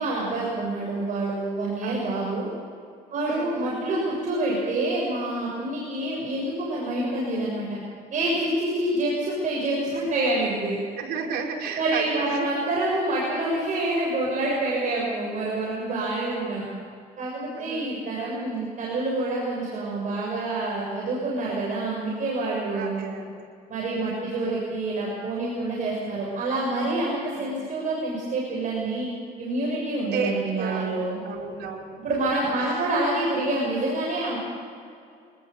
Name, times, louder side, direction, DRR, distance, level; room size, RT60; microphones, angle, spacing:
voice 1, 0.0-2.5 3.1-7.8 8.1-10.8 11.8-16.6 17.2-23.0 23.7-29.1 29.4-31.2 32.0-34.4, right 2 dB, 50° right, -4 dB, 7.1 m, -27 dB
voice 2, 1.8-2.2 3.3-3.8 7.1-7.3 11.0-12.5 15.9-16.4 17.6-18.1 22.7-23.4 27.3-27.5 30.0-31.9, right 5 dB, 75° right, -1 dB, 5.1 m, -33 dB
25.0 x 20.0 x 7.1 m, 2.4 s
cardioid pair, 110°, 17 cm